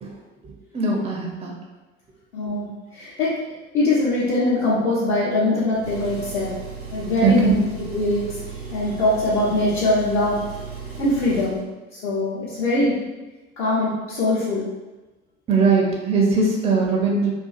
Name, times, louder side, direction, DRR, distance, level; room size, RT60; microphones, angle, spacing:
voice 1, 0.4-1.5 7.2-7.6 15.5-17.3, right 4 dB, 20° right, -1 dB, 0.5 m, -20 dB
voice 2, 2.3-3.3 3.7-6.6 6.9-8.2 8.7-10.4 11.0-11.6 11.9-12.9 13.6-14.7, left 2 dB, 60° left, -9 dB, 0.8 m, -22 dB
Engine, 5.7-11.6, right 5 dB, 80° right, 0.9 m, -36 dB
2.5 x 2.4 x 2.4 m, 1.1 s
figure-of-eight pair, 65°, 32 cm